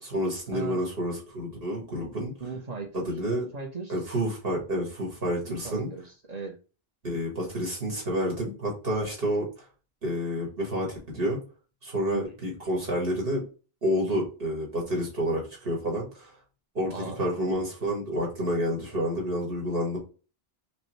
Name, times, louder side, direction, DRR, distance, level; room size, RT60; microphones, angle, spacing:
voice 1, 0.1-2.3 2.9-3.5 3.9-5.9 7.0-9.5 10.0-11.4 11.8-13.4 13.8-16.3 16.7-20.0, equal, 60° right, -2 dB, 2.0 m, -29 dB
voice 2, 2.4-3.0 3.4-4.0 5.5-6.6 12.1-12.2 16.9-17.2, right 4 dB, 40° right, 1 dB, 0.9 m, -38 dB
5.2 x 2.2 x 3.1 m, 0.36 s
omnidirectional pair, 1.1 m